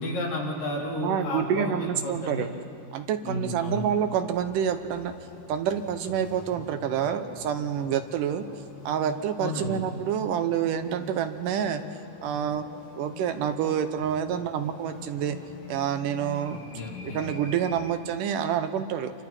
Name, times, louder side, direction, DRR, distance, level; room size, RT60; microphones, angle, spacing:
voice 1, 0.0-2.5 3.2-3.8 9.4-9.8 16.7-17.2, left 1 dB, 75° left, -4 dB, 5.0 m, -32 dB
voice 2, 1.0-2.5 2.9-5.1 5.5-8.4 8.9-11.8 12.2-12.6 13.0-15.4 15.7-16.6 17.1-19.1, right 9 dB, 75° right, 8 dB, 2.5 m, -27 dB
sound 1, 3.9-18.0, left 5 dB, 50° left, 2.0 m, -45 dB
28.0 x 25.0 x 4.4 m, 2.5 s
omnidirectional pair, 3.9 m